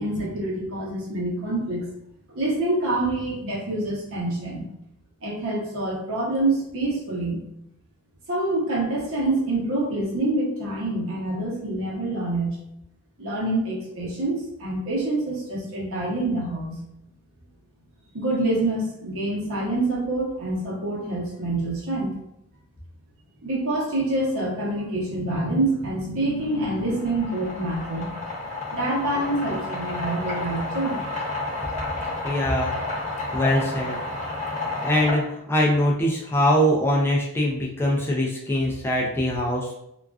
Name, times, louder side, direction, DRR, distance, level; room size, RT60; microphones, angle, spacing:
voice 1, 0.0-1.9 2.3-4.7 5.2-7.4 8.3-12.6 13.2-16.8 18.1-22.1 23.4-28.1 28.7-31.0, right 2 dB, 65° right, -3 dB, 0.8 m, -26 dB
sound 1, 26.4-35.1, left 2 dB, 35° left, 0.9 m, -31 dB
voice 2, 32.2-32.7 33.3-34.0 34.8-39.7, equal, 10° left, -3 dB, 0.3 m, -22 dB
2.3 x 2.3 x 2.3 m, 0.80 s
head